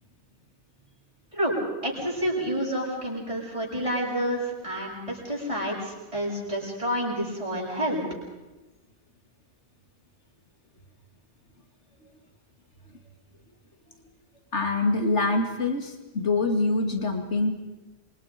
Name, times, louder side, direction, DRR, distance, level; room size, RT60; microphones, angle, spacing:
voice 1, 1.3-8.0, equal, 30° right, -3 dB, 7.8 m, -29 dB
voice 2, 14.5-17.5, left 2 dB, 85° left, 4 dB, 2.9 m, -25 dB
28.0 x 24.5 x 5.3 m, 1.1 s
omnidirectional pair, 1.2 m